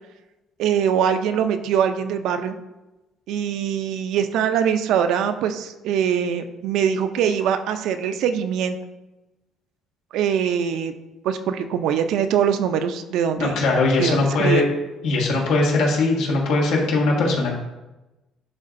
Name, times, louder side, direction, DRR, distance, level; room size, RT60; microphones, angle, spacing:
voice 1, 0.6-2.5 3.3-8.8 10.1-10.9 11.2-13.6 14.0-14.6, right 8 dB, 75° right, 9 dB, 0.5 m, -22 dB
voice 2, 13.4-14.6 15.0-17.5, left 2 dB, 85° left, -2 dB, 1.6 m, -20 dB
10.5 x 3.7 x 2.6 m, 1.0 s
cardioid pair, 130°, 0 cm